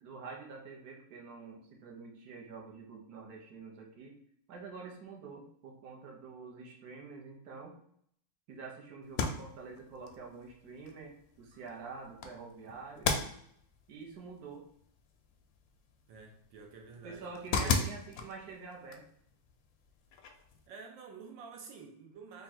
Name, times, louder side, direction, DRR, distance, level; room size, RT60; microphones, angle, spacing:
voice 1, 0.0-4.2 4.5-7.8 8.5-13.4 13.9-14.7 17.0-19.1, right 4 dB, 65° right, 0 dB, 1.3 m, -47 dB
sound 1, 9.0-20.7, left 5 dB, 70° left, 0.8 m, -39 dB
voice 2, 16.1-17.8 20.7-22.4, right 5 dB, 85° right, 1 dB, 1.4 m, -49 dB
3.6 x 2.3 x 4.1 m, 0.66 s
omnidirectional pair, 1.9 m